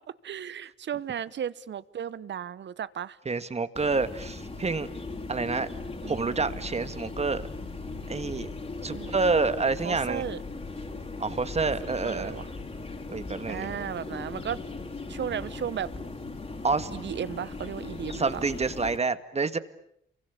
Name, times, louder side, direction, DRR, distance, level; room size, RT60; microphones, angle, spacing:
voice 1, 0.2-3.2 6.0-6.6 8.9-9.1 9.8-10.4 12.0-12.5 13.5-14.6 15.1-15.9 16.9-18.3, right 9 dB, 65° right, 17 dB, 1.1 m, -35 dB
voice 2, 3.3-4.9 5.3-5.7 6.1-7.4 8.1-8.5 8.8-10.3 11.2-12.4 13.1-13.7 16.6-16.9 18.1-19.6, right 4 dB, 30° right, 11 dB, 1.9 m, -28 dB
sound 1, 3.8-19.0, left 3 dB, 35° left, 4.7 m, -38 dB
29.0 x 23.5 x 8.8 m, 0.72 s
cardioid pair, 80°, 20 cm